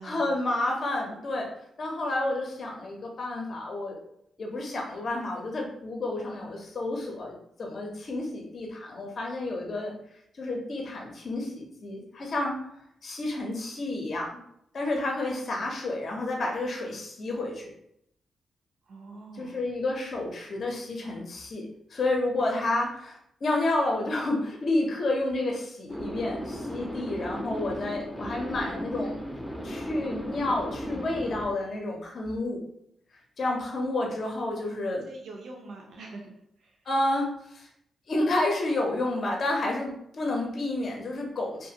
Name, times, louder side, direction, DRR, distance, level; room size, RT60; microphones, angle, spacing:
voice 1, 0.0-1.5 1.8-4.0 4.4-9.9 10.4-12.6 13.0-14.4 14.7-17.7 19.3-29.2 29.6-32.6 33.4-35.0 36.9-37.7 38.1-41.7, left 2 dB, 55° left, 0 dB, 0.6 m, -30 dB
voice 2, 18.8-19.6 35.1-36.3 36.6-36.8, right 3 dB, 75° right, 0 dB, 0.4 m, -44 dB
sound 1, 25.9-31.4, equal, ahead, 0.4 m, -36 dB
2.4 x 2.4 x 2.7 m, 0.75 s
cardioid pair, 75°, 0 cm